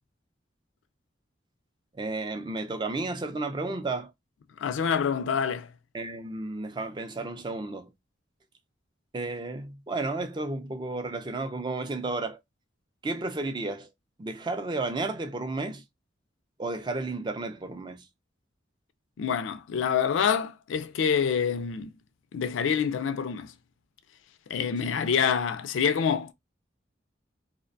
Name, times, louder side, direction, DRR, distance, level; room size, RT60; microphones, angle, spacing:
voice 1, 2.0-4.1 5.9-7.9 9.1-12.4 13.0-13.9 14.2-15.8 16.6-18.0 24.8-25.0, right 2 dB, 25° right, 0.4 m, -32 dB
voice 2, 4.6-5.7 19.2-21.9 22.3-23.5 24.5-26.3, left 7 dB, 80° left, 0.4 m, -26 dB
2.5 x 2.1 x 2.5 m
head